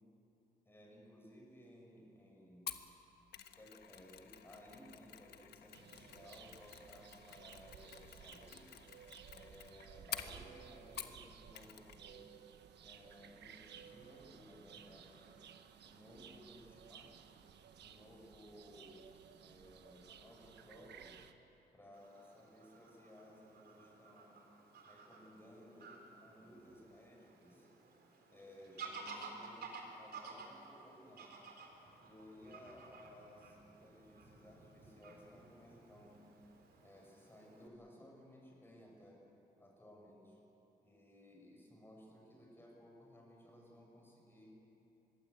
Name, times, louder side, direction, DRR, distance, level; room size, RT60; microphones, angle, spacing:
voice 1, 0.6-2.7 3.6-8.8 9.3-12.3 12.8-15.4 15.8-17.3 17.8-19.0 19.4-21.1 21.7-24.4 24.8-27.7 28.3-31.4 32.0-36.2 36.8-39.2 39.6-40.4 40.8-44.6, equal, 15° left, -1 dB, 6.2 m, -59 dB
Mechanisms, 2.7-11.3 11.5-12.0 12.3-12.4, left 9 dB, 75° left, 1.3 m, -50 dB
sound 1, 5.7-21.3, right 8 dB, 85° right, 1.3 m, -57 dB
Fowl / Bird vocalization bird call bird song, 21.9-37.7, right 4 dB, 70° right, 4.0 m, -54 dB
25.5 x 21.5 x 8.2 m, 3.0 s
wide cardioid pair, 155°, 17 cm